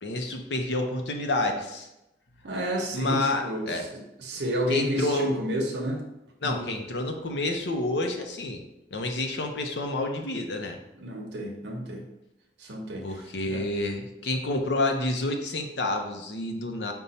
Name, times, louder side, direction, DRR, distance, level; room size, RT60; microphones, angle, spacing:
voice 1, 0.0-1.9 2.9-3.9 4.7-5.3 6.4-8.6 8.9-10.8 13.0-16.9, left 2 dB, 70° left, 4 dB, 0.6 m, -29 dB
voice 2, 2.4-6.0 6.4-6.8 11.0-12.0 12.6-13.1 13.5-13.6, equal, 75° right, 1 dB, 0.8 m, -30 dB
5.3 x 2.3 x 4.1 m, 0.92 s
head